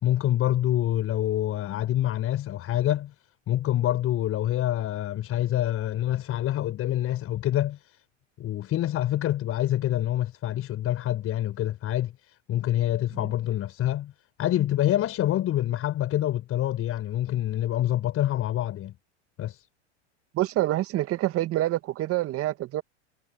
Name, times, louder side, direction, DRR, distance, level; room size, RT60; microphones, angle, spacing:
voice 1, 0.0-3.1 3.5-8.0 8.4-14.1 14.4-18.9 19.4-19.7, left 13 dB, 40° left, 6.4 m, -26 dB
voice 2, 20.3-22.8, right 15 dB, 40° right, 2.0 m, -26 dB
hypercardioid pair, 105°, 35 cm